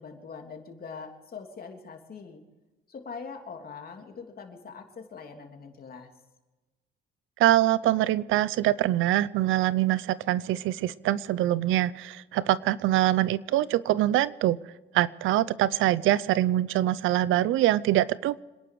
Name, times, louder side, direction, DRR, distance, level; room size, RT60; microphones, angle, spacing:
voice 1, 0.0-2.4 2.9-6.1, left 5 dB, 50° left, 3 dB, 3.1 m, -42 dB
voice 2, 7.4-14.6 14.9-18.4, right 14 dB, 90° right, 19 dB, 0.6 m, -24 dB
26.5 x 11.0 x 4.8 m, 1.1 s
cardioid pair, 90°, 20 cm